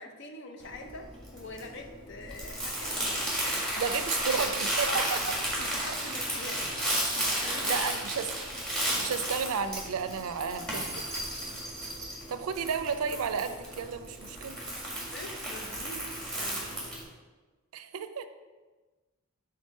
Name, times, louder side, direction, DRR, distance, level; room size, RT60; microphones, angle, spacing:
voice 1, 0.0-3.8 4.8-5.2 5.6-6.7 7.1-7.8 15.1-16.1 16.4-16.9, left 2 dB, 55° left, 4 dB, 0.7 m, -44 dB
Crumpling crinkling, 0.6-17.0, right 1 dB, 5° left, 1.6 m, -33 dB
voice 2, 3.8-5.2 6.9-7.1 7.4-8.5 8.8-11.1 11.4-11.6 12.3-14.6 17.7-18.3, right 6 dB, 85° right, 10 dB, 0.4 m, -33 dB
5.3 x 3.9 x 5.2 m, 1.3 s
head